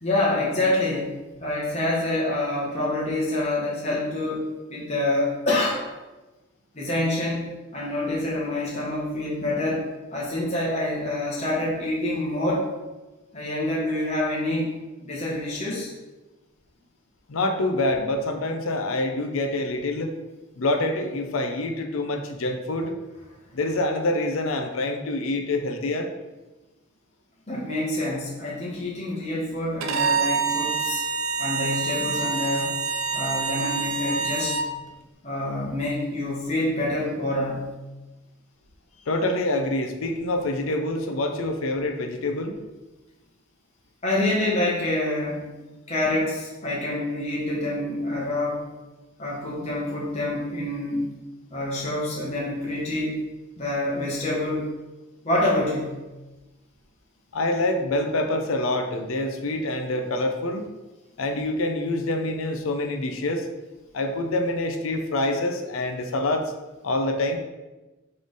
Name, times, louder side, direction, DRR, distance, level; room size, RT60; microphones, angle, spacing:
voice 1, 0.0-5.8 6.7-9.8 10.1-12.7 13.3-14.7 15.0-15.9 27.5-31.0 31.4-32.8 33.1-34.6 35.2-37.7 44.0-45.5 45.9-48.6 49.2-51.1 51.5-53.2 53.6-54.7 55.2-56.0, left 1 dB, 30° left, -6 dB, 1.0 m, -26 dB
voice 2, 17.3-20.1 20.6-22.9 23.5-26.1 39.1-42.6 57.3-60.7 61.2-63.5 63.9-66.5 66.8-67.4, left 2 dB, 85° left, 5 dB, 0.6 m, -26 dB
Bowed string instrument, 29.8-34.7, right 5 dB, 85° right, 0.5 m, -26 dB
3.8 x 3.3 x 3.9 m, 1.1 s
head